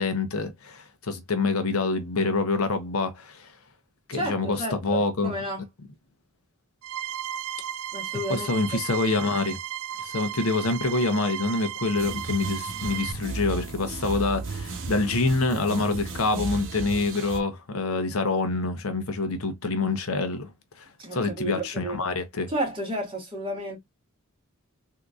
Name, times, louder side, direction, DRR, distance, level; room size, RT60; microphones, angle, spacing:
voice 1, 0.0-3.5 4.1-5.3 8.3-9.6 10.0-20.5 20.8-22.5, left 3 dB, 75° left, 0.8 m, -26 dB
voice 2, 4.1-5.6 7.9-8.8 21.0-22.1 22.5-23.8, right 1 dB, 25° right, 1.7 m, -32 dB
sound 1, 6.8-13.1, right 11 dB, 85° right, 0.3 m, -35 dB
sound 2, 11.9-17.4, right 4 dB, 60° right, 0.9 m, -34 dB
3.6 x 2.8 x 2.4 m
head